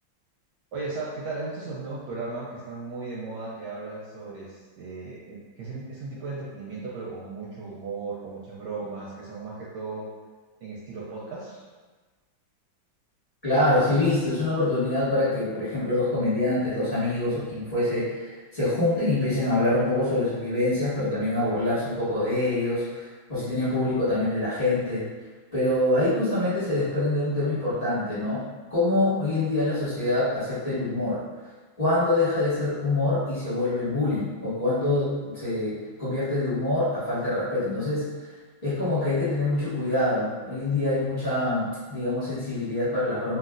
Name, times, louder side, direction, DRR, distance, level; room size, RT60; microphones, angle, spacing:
voice 1, 0.7-10.0 10.6-11.6, right 3 dB, 75° right, -6 dB, 1.0 m, -36 dB
voice 2, 13.4-25.1 25.5-28.4 28.7-31.2 31.8-38.3 38.6-43.4, left 2 dB, 25° left, -14 dB, 1.2 m, -25 dB
3.0 x 2.6 x 2.4 m, 1.3 s
omnidirectional pair, 2.1 m